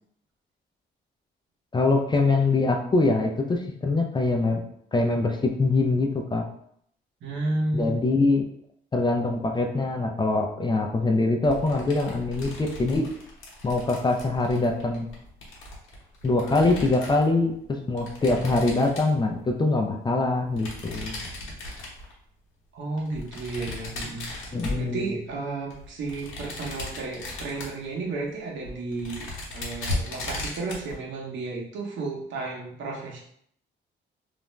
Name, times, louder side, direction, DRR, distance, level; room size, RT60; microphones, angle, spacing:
voice 1, 1.7-4.6 4.9-6.4 7.7-8.4 8.9-13.1 13.6-15.1 16.2-21.1 24.5-25.2, left 3 dB, 20° left, 2 dB, 0.4 m, -23 dB
voice 2, 7.2-8.0 22.7-24.2 24.8-29.3 29.5-33.2, right 3 dB, 70° right, -2 dB, 0.8 m, -32 dB
sound 1, 11.4-17.3 18.0-19.5 20.5-22.2 23.0-25.3 25.7-27.8 28.3-28.4 28.6-30.9, left 2 dB, 90° left, 0.8 m, -37 dB
2.4 x 2.1 x 3.1 m, 0.69 s
cardioid pair, 90°, 20 cm